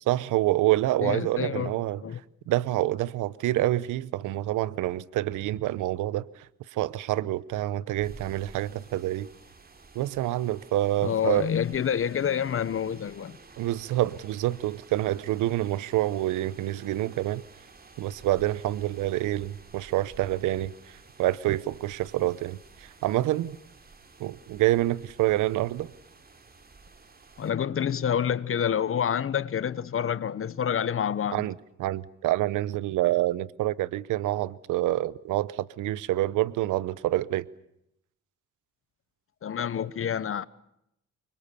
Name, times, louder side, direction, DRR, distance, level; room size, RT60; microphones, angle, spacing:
voice 1, 0.1-2.0 2.5-6.4 6.7-9.3 9.9-11.5 13.6-17.4 18.0-23.6 24.2-25.9 31.3-37.5, right 15 dB, 90° right, 0.9 m, -27 dB
voice 2, 1.0-1.7 2.0-2.2 11.0-13.4 27.4-31.4 39.4-40.4, left 8 dB, 45° left, 1.1 m, -28 dB
sound 1, 8.0-27.5, right 4 dB, 30° right, 3.1 m, -52 dB
26.0 x 24.5 x 6.9 m
cardioid pair, 90°, 30 cm